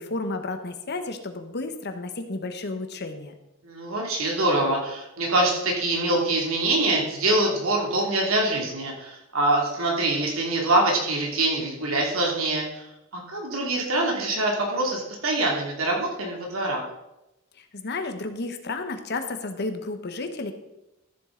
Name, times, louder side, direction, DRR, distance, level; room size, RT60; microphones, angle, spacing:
voice 1, 0.0-3.3 17.6-20.5, left 3 dB, 55° left, 7 dB, 1.1 m, -32 dB
voice 2, 3.6-12.8 13.1-16.8, right 2 dB, 85° right, -1 dB, 2.6 m, -24 dB
13.5 x 7.6 x 3.8 m, 0.92 s
head